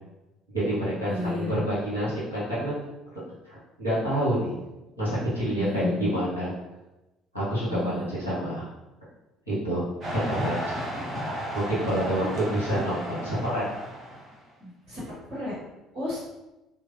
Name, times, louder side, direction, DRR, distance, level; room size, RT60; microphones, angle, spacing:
voice 1, 0.5-2.8 3.4-4.6 5.0-6.5 7.3-8.7 9.5-9.8 10.1-10.7 11.5-13.7, right 1 dB, 85° right, -8 dB, 1.1 m, -28 dB
voice 2, 1.1-1.6 5.6-6.2 7.7-8.1 12.2-12.3 14.6-15.0 15.3-15.5 15.9-16.2, left 1 dB, 50° right, -8 dB, 1.3 m, -31 dB
sound 1, 10.0-14.4, equal, 35° right, 1.1 m, -34 dB
3.0 x 2.5 x 2.6 m, 0.99 s
figure-of-eight pair, 55°, 0 cm